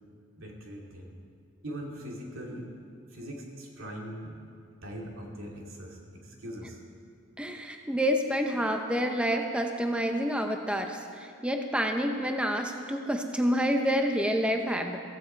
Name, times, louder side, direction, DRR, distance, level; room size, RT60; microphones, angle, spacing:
voice 1, 0.3-1.2 1.6-2.7 3.1-4.4 4.8-6.8, equal, 80° right, -1 dB, 2.7 m, -41 dB
voice 2, 7.4-15.0, equal, 5° right, 4 dB, 0.7 m, -28 dB
15.5 x 15.0 x 4.6 m, 2.3 s
head